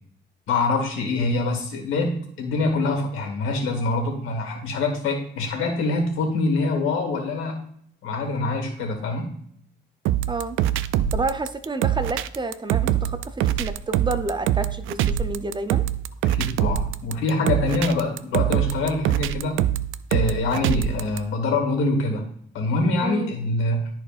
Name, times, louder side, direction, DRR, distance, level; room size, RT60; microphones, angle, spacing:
voice 1, 0.5-7.6 8.0-9.3 16.2-19.6 20.1-22.2 22.5-23.9, left 3 dB, 90° left, 3 dB, 2.1 m, -25 dB
sound 1, 10.1-21.2, right 11 dB, 85° right, 0.4 m, -23 dB
voice 2, 10.3-10.6 11.1-15.8 23.0-23.3, right 3 dB, 25° right, 9 dB, 0.8 m, -29 dB
12.5 x 4.4 x 2.5 m, 0.66 s
cardioid pair, 90°, 20 cm